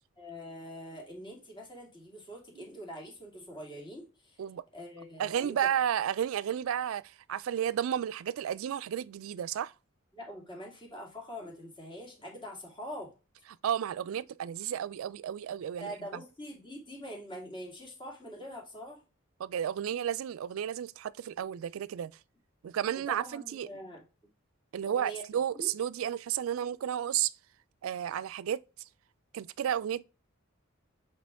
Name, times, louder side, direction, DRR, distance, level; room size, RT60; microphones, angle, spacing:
voice 1, 0.2-4.4 4.7-5.6 10.1-13.1 15.8-19.0 23.1-24.0 24.9-25.2 25.5-25.7, equal, 25° left, 2.1 m, -44 dB
voice 2, 5.2-9.7 13.6-16.2 19.4-22.1 22.6-23.7 24.7-27.3 27.8-28.6 29.3-30.0, right 9 dB, 75° right, 0.3 m, -32 dB
7.4 x 4.3 x 3.5 m
head